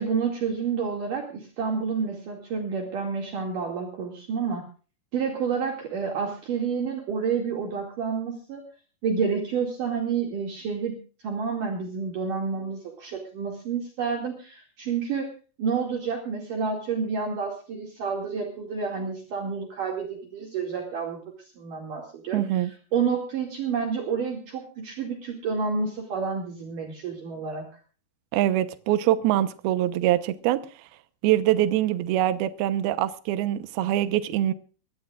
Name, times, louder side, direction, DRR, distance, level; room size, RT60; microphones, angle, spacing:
voice 1, 0.0-4.7 5.1-8.6 9.0-11.0 11.2-15.3 15.6-27.7, right 5 dB, 55° right, 3.7 m, -29 dB
voice 2, 22.3-22.7 28.3-30.6 31.2-34.5, right 13 dB, 75° right, 2.7 m, -24 dB
22.5 x 18.0 x 2.5 m
omnidirectional pair, 4.8 m